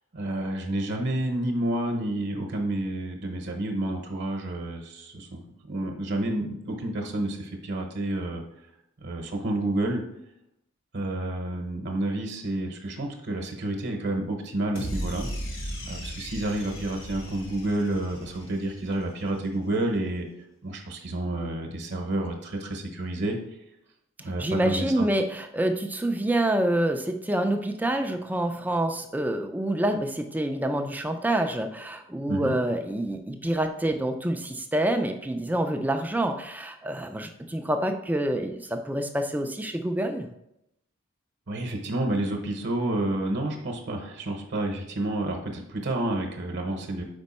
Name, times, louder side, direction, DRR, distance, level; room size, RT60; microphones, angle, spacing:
voice 1, 0.1-8.4 9.0-10.0 10.9-15.3 15.9-20.3 20.6-23.4 24.2-25.1 32.3-32.6 41.5-47.0, right 1 dB, 55° right, 2 dB, 0.9 m, -29 dB
sound 1, 14.8-19.1, equal, 65° left, 1.2 m, -36 dB
voice 2, 24.2-40.3, right 1 dB, 10° right, 5 dB, 0.3 m, -27 dB
5.2 x 4.4 x 4.2 m, 0.81 s
head